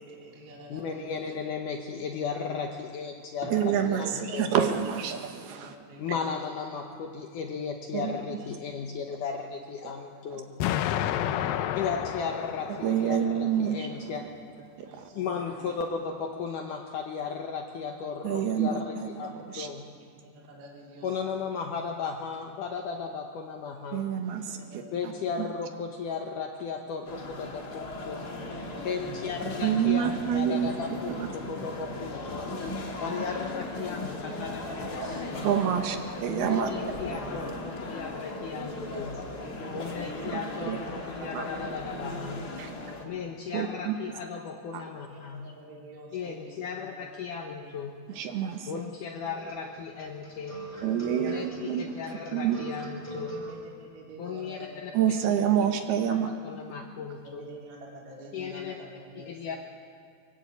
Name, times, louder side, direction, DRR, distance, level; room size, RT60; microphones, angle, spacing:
voice 1, 0.0-1.2 3.4-3.5 3.8-3.9 5.4-6.4 8.3-8.5 9.1-9.2 10.1-11.8 14.8-15.8 19.5-19.6 20.1-21.1 24.0-24.1 24.3-25.3 27.1-27.2 28.4-29.1 32.4-32.5 32.8-32.9 34.2-34.3 34.6-34.8 35.3-35.4 35.7-35.8 36.7-36.8 38.4-40.3 41.8-41.9 42.9-43.3 45.1-46.7 47.0-47.1 47.6-47.7 48.1-48.2 49.4-49.5 50.4-51.8 53.5-55.0 57.2-59.6, right 2 dB, 45° right, -3 dB, 4.0 m, -48 dB
voice 2, 0.7-4.1 4.3-4.5 6.0-10.6 11.8-14.2 15.1-19.9 21.0-24.0 24.9-32.5 33.0-35.4 36.3-39.2 39.7-42.5 43.0-45.5 46.1-48.0 48.7-50.6 51.2-53.4 54.2-54.9 56.1-57.5 58.3-58.8 59.2-59.6, left 6 dB, 70° left, 3 dB, 2.0 m, -36 dB
voice 3, 3.5-5.8 7.9-8.2 9.8-9.9 12.7-14.3 14.8-15.1 18.2-19.7 23.9-25.1 29.6-31.3 32.9-33.0 35.0-35.2 35.4-36.7 37.1-37.2 40.2-40.8 41.3-41.4 42.6-43.0 43.5-44.0 44.7-44.8 48.1-48.8 50.8-52.0 52.3-52.7 54.9-56.3, right 9 dB, 70° right, 5 dB, 3.0 m, -28 dB
Explosion, 10.6-13.6, left 11 dB, 90° left, 1.9 m, -30 dB
sound 1, 27.1-43.0, left 2 dB, 45° left, 1.3 m, -37 dB
sound 2, 49.4-53.6, right 2 dB, 10° right, 3.5 m, -40 dB
24.5 x 16.5 x 8.1 m, 2.2 s
omnidirectional pair, 5.0 m